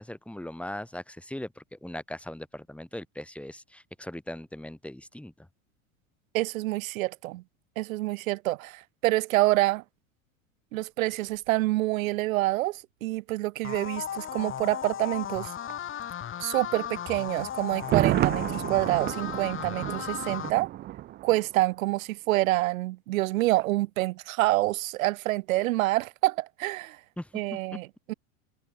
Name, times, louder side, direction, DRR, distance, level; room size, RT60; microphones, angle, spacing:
voice 1, 0.0-5.5 27.2-27.8, left 1 dB, 5° left, 7.7 m, -39 dB
voice 2, 6.3-7.4 7.8-9.8 10.7-15.5 16.4-20.7 21.2-27.0 27.3-28.1, right 18 dB, 75° right, 1.6 m, -27 dB
sound 1, 13.6-20.5, left 9 dB, 30° left, 2.8 m, -36 dB
Thunder, 17.7-21.7 21.9-22.0, right 14 dB, 25° right, 0.4 m, -30 dB
hypercardioid pair, 110°, 41 cm